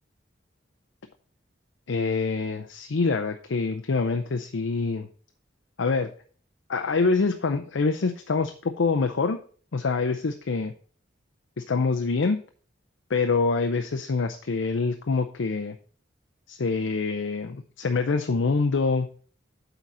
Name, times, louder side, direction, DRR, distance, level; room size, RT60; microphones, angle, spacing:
voice 1, 1.9-5.1 5.8-6.1 6.7-9.4 9.7-10.7 11.6-12.4 13.1-15.8 16.5-19.1, left 4 dB, 80° left, 6 dB, 0.6 m, -25 dB
8.3 x 4.0 x 5.9 m, 0.44 s
head